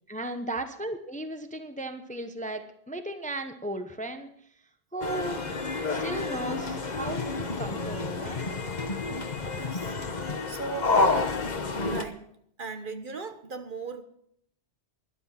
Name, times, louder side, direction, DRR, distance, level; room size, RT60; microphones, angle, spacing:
voice 1, 0.1-4.3 4.9-5.4 5.9-8.5, right 1 dB, 10° left, 8 dB, 0.8 m, -36 dB
sound 1, 5.0-12.1, left 3 dB, 40° left, 1.2 m, -29 dB
voice 2, 9.6-10.9 11.8-12.2 12.6-14.0, right 4 dB, 50° right, 8 dB, 1.2 m, -38 dB
12.5 x 11.5 x 5.8 m, 0.70 s
omnidirectional pair, 1.2 m